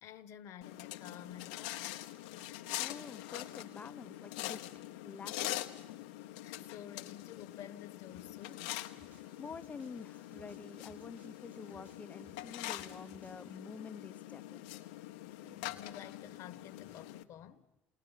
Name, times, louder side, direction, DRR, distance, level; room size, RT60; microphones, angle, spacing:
voice 1, 0.0-2.2 2.8-3.2 6.4-8.9 15.2-17.7, left 10 dB, 65° left, 1.3 m, -51 dB
sound 1, 0.6-17.2, left 15 dB, 85° left, 0.9 m, -44 dB
voice 2, 2.8-4.6 5.0-5.7 9.4-14.7, left 5 dB, 25° left, 1.1 m, -48 dB
sound 2, 8.1-13.6, right 2 dB, 25° right, 3.8 m, -65 dB
28.5 x 19.5 x 5.8 m
supercardioid pair, 80°, 5 cm